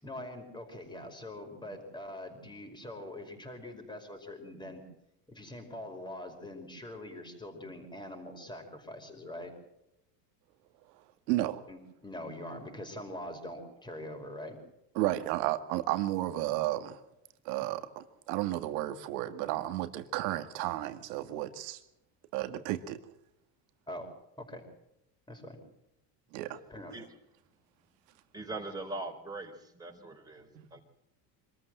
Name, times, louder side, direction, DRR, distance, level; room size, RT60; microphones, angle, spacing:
voice 1, 0.0-4.8 5.3-9.5 11.7-14.6 17.6-17.7 23.9-24.1 24.4-24.6 25.3-25.6 26.7-26.9, left 1 dB, 10° left, 5.4 m, -43 dB
voice 2, 11.3-11.6 15.0-17.0 17.5-21.8 22.3-23.0 26.3-26.6 30.6-30.7, right 15 dB, 80° right, 2.0 m, -32 dB
voice 3, 28.3-30.8, right 2 dB, 10° right, 4.5 m, -41 dB
25.5 x 14.0 x 7.9 m
supercardioid pair, 125°, 48 cm